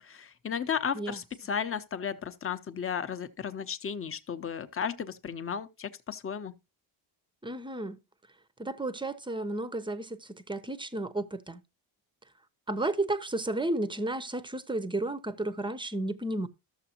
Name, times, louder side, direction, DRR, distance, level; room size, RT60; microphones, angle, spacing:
voice 1, 0.0-6.5, left 7 dB, 30° left, 0.8 m, -34 dB
voice 2, 7.4-8.0 8.6-11.6 12.7-16.5, right 2 dB, 10° right, 0.6 m, -32 dB
13.0 x 7.0 x 2.9 m
cardioid pair, 125°, 46 cm